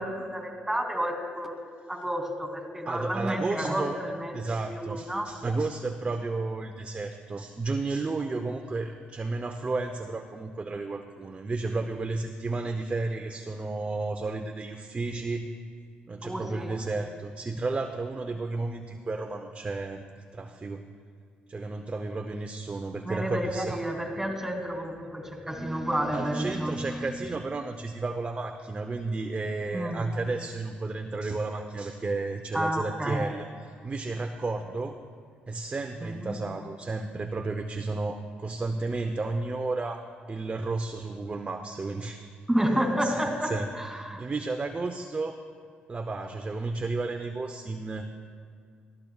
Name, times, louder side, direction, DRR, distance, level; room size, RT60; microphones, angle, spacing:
voice 1, 0.0-1.6 1.9-5.3 16.2-16.7 23.0-27.1 29.7-30.1 32.5-33.3 36.0-36.4 42.5-44.2, equal, 10° right, 2 dB, 2.7 m, -30 dB
voice 2, 2.9-4.0 4.3-15.5 16.1-20.0 20.3-20.8 21.5-23.8 26.1-35.0 35.5-42.2 42.9-43.7 44.0-45.4 45.9-48.1, right 3 dB, 30° right, 6 dB, 0.7 m, -32 dB
19.5 x 13.5 x 2.4 m, 2.3 s
supercardioid pair, 65°, 4 cm